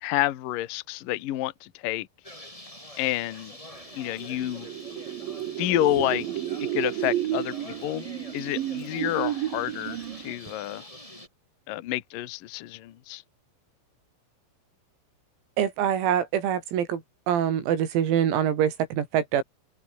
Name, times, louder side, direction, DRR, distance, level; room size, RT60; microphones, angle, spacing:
voice 1, 0.0-2.1 3.0-3.6 3.9-4.7 5.6-6.5 6.7-8.1 8.3-10.9 11.7-13.2, left 15 dB, 65° left, 2.2 m, -29 dB
Bird, 2.2-11.3, left 1 dB, 5° left, 6.9 m, -45 dB
sound 1, 4.0-10.5, right 13 dB, 70° right, 2.2 m, -32 dB
voice 2, 15.6-17.0 17.3-19.4, right 9 dB, 90° right, 6.2 m, -24 dB
open air
omnidirectional pair, 6.0 m